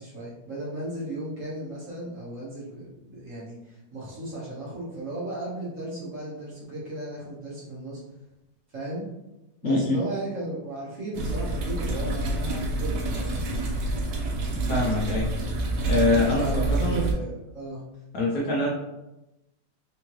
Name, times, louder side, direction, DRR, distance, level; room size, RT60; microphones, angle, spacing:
voice 1, 0.0-8.0 8.7-9.0 9.6-13.4 16.1-17.8, right 1 dB, 50° right, -6 dB, 1.4 m, -35 dB
voice 2, 9.6-10.0 14.7-15.3 15.9-17.0 18.1-18.7, left 2 dB, 65° left, -3 dB, 1.0 m, -24 dB
sound 1, 11.1-17.1, right 2 dB, 75° right, 1.3 m, -28 dB
3.6 x 3.5 x 3.0 m, 0.95 s
omnidirectional pair, 2.0 m